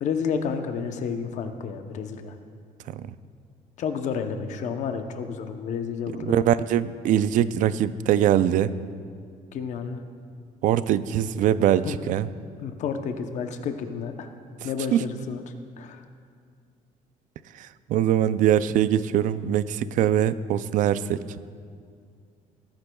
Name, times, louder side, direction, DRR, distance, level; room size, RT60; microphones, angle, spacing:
voice 1, 0.0-2.4 3.8-6.4 9.5-10.0 11.9-12.0 12.6-14.3 14.6-15.4 15.8-16.0, left 6 dB, 55° left, 7 dB, 0.8 m, -30 dB
voice 2, 6.2-8.7 10.6-12.3 14.6-15.0 17.5-21.2, right 10 dB, 60° right, 15 dB, 0.4 m, -23 dB
19.0 x 9.7 x 2.3 m, 2.2 s
cardioid pair, 155°, 15 cm